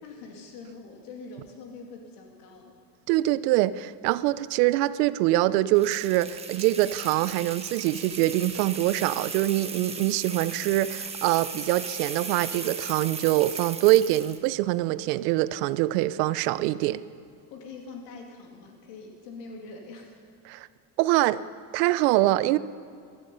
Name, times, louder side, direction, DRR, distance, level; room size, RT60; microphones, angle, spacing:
voice 1, 0.0-2.8 17.5-20.2, left 4 dB, 85° left, 1 dB, 2.7 m, -44 dB
voice 2, 3.1-17.0 20.5-20.7 21.0-21.4 21.7-22.6, right 16 dB, 90° right, 16 dB, 0.6 m, -24 dB
sound 1, 5.7-14.5, right 4 dB, 15° right, 1.1 m, -37 dB
15.5 x 12.5 x 5.6 m, 2.3 s
cardioid pair, 140°, 47 cm